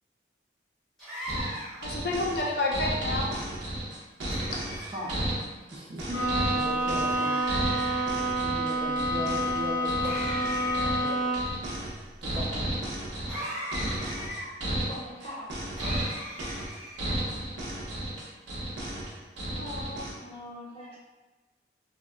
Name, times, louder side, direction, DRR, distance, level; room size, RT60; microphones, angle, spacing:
sound 1, 1.0-1.9 4.3-5.2 7.1-8.0 10.0-11.1 13.3-14.5 15.8-17.2, equal, ahead, 0.7 m, -38 dB
sound 2, 1.3-20.1, right 1 dB, 75° right, 0.6 m, -33 dB
voice 1, 1.8-3.3 19.5-20.1, left 2 dB, 55° left, -2 dB, 0.4 m, -30 dB
voice 2, 4.7-5.2 5.7-7.8 8.4-10.5 10.7-11.4 12.2-12.8 13.8-13.9, equal, 25° right, -4 dB, 0.4 m, -38 dB
Bowed string instrument, 6.1-11.6, right 1 dB, 85° left, 1.0 m, -28 dB
voice 3, 14.9-15.5 20.2-21.1, left 1 dB, 30° left, -6 dB, 0.7 m, -42 dB
2.7 x 2.2 x 2.4 m, 1.2 s
head